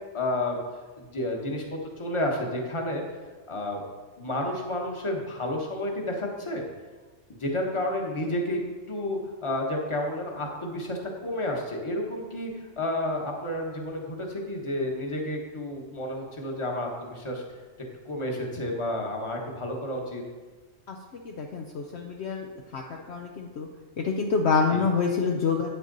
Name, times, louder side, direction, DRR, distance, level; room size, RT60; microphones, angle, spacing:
voice 1, 0.1-0.6 1.0-3.0 3.5-3.8 4.2-6.7 7.3-8.6 8.9-17.4 18.0-20.2 24.7-24.9, left 1 dB, 25° left, 0 dB, 1.3 m, -31 dB
voice 2, 21.2-22.5 22.7-23.7 24.0-25.7, left 5 dB, 60° left, 2 dB, 0.9 m, -27 dB
8.9 x 8.2 x 4.0 m, 1.3 s
omnidirectional pair, 1.4 m